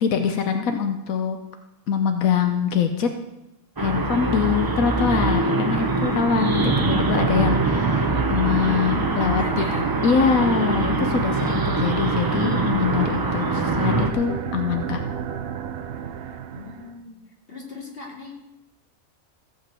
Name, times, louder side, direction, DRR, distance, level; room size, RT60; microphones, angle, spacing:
voice 1, 0.0-1.4 1.9-3.1 3.8-9.7 10.0-15.0, left 6 dB, 90° left, 6 dB, 1.3 m, -23 dB
sound 1, 3.8-14.1, right 3 dB, 25° right, 0.5 m, -23 dB
sound 2, 6.5-16.9, right 9 dB, 55° right, 0.7 m, -31 dB
voice 2, 9.1-9.9 16.5-17.2 17.5-18.3, left 3 dB, 45° left, -1 dB, 2.7 m, -36 dB
15.0 x 5.4 x 7.6 m, 0.92 s
omnidirectional pair, 1.4 m